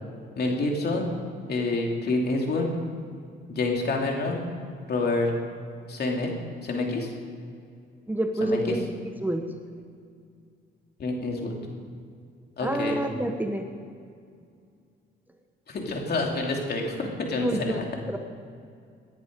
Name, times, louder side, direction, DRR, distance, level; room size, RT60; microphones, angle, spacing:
voice 1, 0.4-1.1 1.5-2.7 3.5-4.5 4.9-5.3 5.9-6.3 6.6-7.1 8.4-8.7 11.0-11.5 12.6-13.0 15.7-17.8, left 2 dB, 55° left, 1 dB, 2.9 m, -27 dB
voice 2, 8.1-8.9 9.2-9.4 12.6-13.6 17.4-18.2, right 1 dB, 10° right, 5 dB, 1.1 m, -28 dB
18.0 x 10.5 x 5.4 m, 2.3 s
cardioid pair, 90°, 20 cm